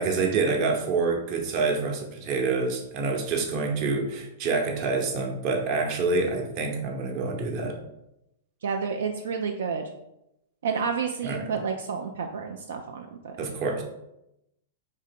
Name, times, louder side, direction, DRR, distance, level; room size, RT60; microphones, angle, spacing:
voice 1, 0.0-7.8 11.2-11.5 13.4-13.8, right 4 dB, 45° right, 2 dB, 0.8 m, -27 dB
voice 2, 8.6-9.9 10.6-13.4, right 5 dB, 80° right, 4 dB, 0.3 m, -30 dB
3.6 x 2.8 x 3.6 m, 0.86 s
hypercardioid pair, 120°, 0 cm